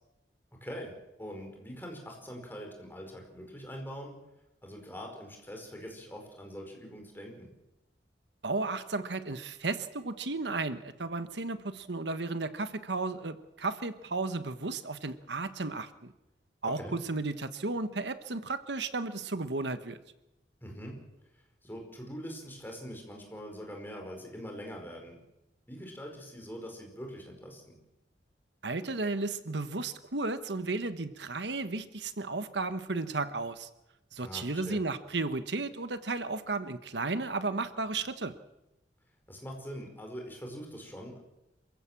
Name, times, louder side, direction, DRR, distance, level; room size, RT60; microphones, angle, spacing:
voice 1, 0.6-4.1 4.6-7.5 16.6-17.0 20.6-21.0 21.6-25.2 25.7-27.7 34.2-34.8 39.3-41.2, equal, 10° left, 1 dB, 5.1 m, -43 dB
voice 2, 8.4-16.1 16.6-20.0 28.6-33.7 34.1-38.3, right 3 dB, 75° right, 11 dB, 1.3 m, -34 dB
27.0 x 15.5 x 7.6 m, 0.93 s
head